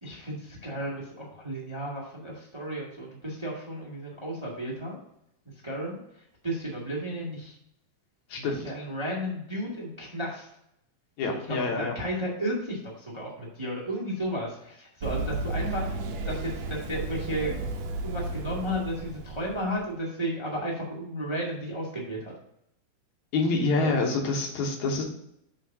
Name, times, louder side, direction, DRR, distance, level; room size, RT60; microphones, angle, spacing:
voice 1, 0.0-5.0 5.6-6.0 6.4-7.6 8.4-10.5 11.3-16.0 16.2-17.5 18.0-22.3 23.8-24.0, equal, 15° right, -4 dB, 1.2 m, -33 dB
voice 2, 8.3-8.6 11.2-11.9 23.3-25.0, left 3 dB, 75° left, 1 dB, 2.5 m, -27 dB
Run, 15.0-19.8, right 2 dB, 70° right, 1.9 m, -33 dB
7.8 x 3.7 x 5.9 m, 0.75 s
omnidirectional pair, 3.4 m